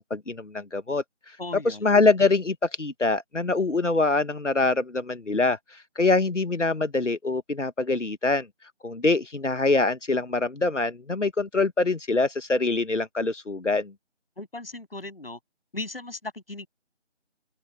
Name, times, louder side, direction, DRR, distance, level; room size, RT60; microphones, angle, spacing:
voice 1, 0.0-1.4 1.6-8.5 8.8-13.9, left 3 dB, 90° left, 1.3 m, -24 dB
voice 2, 1.4-1.9 14.4-15.4 15.7-16.7, left 2 dB, 55° left, 7.7 m, -37 dB
open air
figure-of-eight pair, 165°, 36 cm